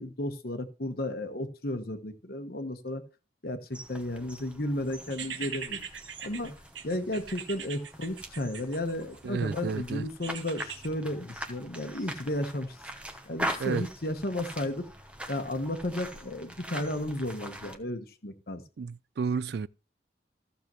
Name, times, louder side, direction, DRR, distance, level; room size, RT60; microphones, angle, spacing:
voice 1, 0.0-3.0 3.4-5.8 6.2-6.5 6.8-12.8 13.3-14.8 15.3-18.6, left 1 dB, 55° left, 1.2 m, -33 dB
sound 1, 3.7-17.8, right 1 dB, 5° right, 1.0 m, -42 dB
sound 2, 5.1-9.3 10.2-10.9, right 7 dB, 80° right, 1.2 m, -41 dB
voice 2, 9.2-10.1 13.6-13.9 18.8-19.7, right 5 dB, 60° right, 0.3 m, -31 dB
14.5 x 6.8 x 3.1 m
head